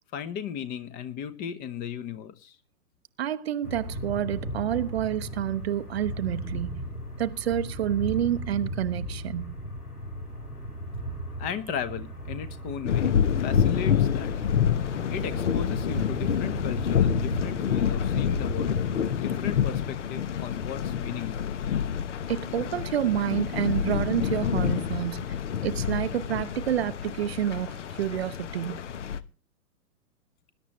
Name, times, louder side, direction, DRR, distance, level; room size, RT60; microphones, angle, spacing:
voice 1, 0.1-2.6 11.4-14.4 15.1-18.8 19.2-21.3, left 8 dB, 20° left, 1.0 m, -36 dB
voice 2, 3.2-6.8 7.2-9.6 22.3-25.4 25.6-28.8, right 11 dB, 45° right, 0.8 m, -29 dB
sound 1, 3.6-19.1, equal, 90° left, 4.7 m, -36 dB
sound 2, 12.9-29.2, left 8 dB, 50° left, 1.1 m, -27 dB
20.5 x 11.0 x 3.1 m
figure-of-eight pair, 120°, 45 cm